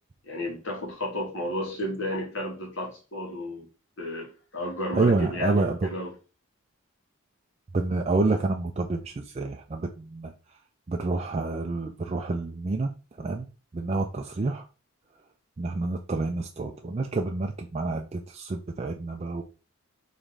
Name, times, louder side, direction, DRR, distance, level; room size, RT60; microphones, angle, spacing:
voice 1, 0.2-3.7 4.0-6.1, left 1 dB, 60° left, 1.5 m, -32 dB
voice 2, 4.9-5.9 7.7-10.3 10.9-12.9 13.2-13.5 13.7-14.7 15.6-19.4, right 3 dB, 30° right, 0.3 m, -28 dB
3.8 x 3.0 x 3.3 m
head